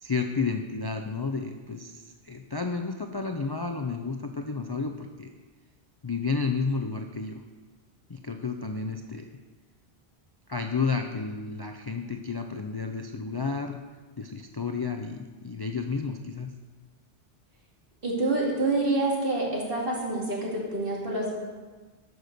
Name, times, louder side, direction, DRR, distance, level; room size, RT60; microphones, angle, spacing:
voice 1, 0.0-5.3 6.0-7.4 8.1-9.3 10.5-13.8 14.2-16.5, left 4 dB, 30° left, 4 dB, 0.4 m, -31 dB
voice 2, 18.0-21.3, right 2 dB, 55° right, -4 dB, 2.8 m, -27 dB
11.5 x 6.2 x 6.7 m, 1.4 s
omnidirectional pair, 1.1 m